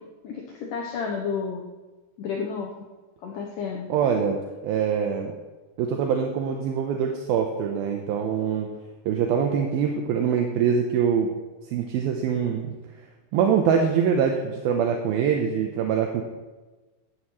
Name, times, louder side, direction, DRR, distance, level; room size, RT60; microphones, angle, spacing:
voice 1, 0.2-1.7 2.2-2.9 3.2-3.9, left 5 dB, 70° left, 0 dB, 2.1 m, -31 dB
voice 2, 3.9-5.3 5.8-8.7 9.1-11.3 11.6-13.1 13.3-16.2, right 7 dB, 75° right, 3 dB, 2.5 m, -24 dB
16.5 x 11.0 x 3.1 m, 1.2 s
omnidirectional pair, 4.7 m